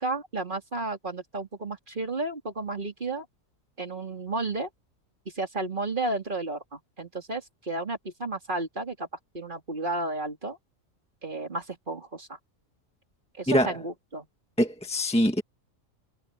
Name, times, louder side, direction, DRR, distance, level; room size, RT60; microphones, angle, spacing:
voice 1, 0.0-3.3 3.8-4.7 5.2-9.1 9.3-10.6 11.2-12.4 13.4-14.3, right 2 dB, 35° right, 3.1 m, -32 dB
voice 2, 13.5-13.8 14.6-15.4, equal, 5° left, 1.6 m, -23 dB
omnidirectional pair, 1.4 m